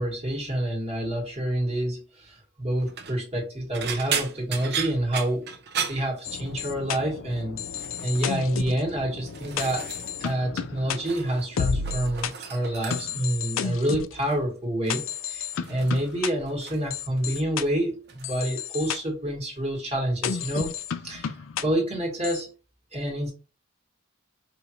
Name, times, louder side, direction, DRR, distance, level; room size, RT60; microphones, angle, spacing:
voice 1, 0.0-9.9 10.2-20.7 21.0-22.5 22.9-23.3, right 1 dB, 30° right, -1 dB, 1.5 m, -28 dB
sound 1, 2.8-3.2 3.7-6.8 7.0-7.4 7.7-8.3 8.9-10.4 10.6-11.5 11.7-13.3 14.2-14.4 14.9-16.9 17.2-17.7 18.1-18.3 19.6-19.7, right 7 dB, 55° right, 0.7 m, -35 dB
sound 2, 6.2-12.3 12.9-14.2 14.9-16.3 16.9-17.6 18.2-19.0 20.2-21.6 22.2-22.4, left 7 dB, 70° left, 0.4 m, -32 dB
4.9 x 2.6 x 3.0 m, 0.34 s
head